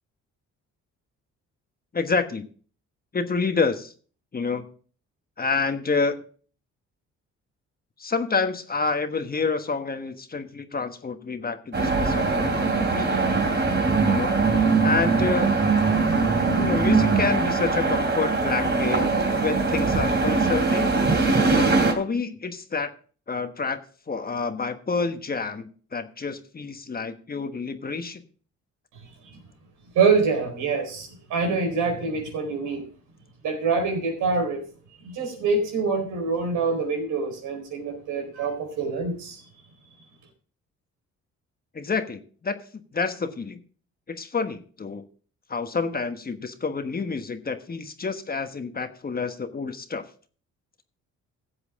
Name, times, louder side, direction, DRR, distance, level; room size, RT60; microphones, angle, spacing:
voice 1, 1.9-2.5 3.1-3.9 4.3-4.7 5.4-6.2 8.0-13.2 14.0-14.4 14.8-15.5 16.6-21.0 21.9-22.9 23.3-23.8 24.1-28.2 41.7-43.6 44.1-45.0 45.5-50.0, left 4 dB, 30° left, 8 dB, 1.3 m, -28 dB
sound 1, 11.7-21.9, right 4 dB, 35° right, 2.8 m, -22 dB
voice 2, 29.9-32.8 33.4-34.6 35.0-39.4, right 4 dB, 85° right, 3 dB, 4.5 m, -25 dB
15.5 x 8.0 x 3.7 m, 0.41 s
cardioid pair, 90°, 30 cm